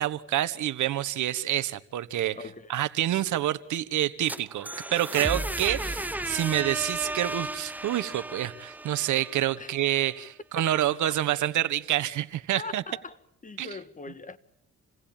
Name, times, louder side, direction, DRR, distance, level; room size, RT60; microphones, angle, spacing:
voice 1, 0.0-2.4 2.7-12.8 13.6-13.7, right 13 dB, 75° right, 1.3 m, -27 dB
voice 2, 2.3-2.8 9.6-9.8 10.6-10.7 12.5-13.2 13.4-14.4, left 3 dB, 25° left, 1.7 m, -41 dB
sound 1, 4.0-9.9, right 1 dB, 5° right, 0.9 m, -34 dB
28.5 x 18.5 x 8.9 m
cardioid pair, 90°, 30 cm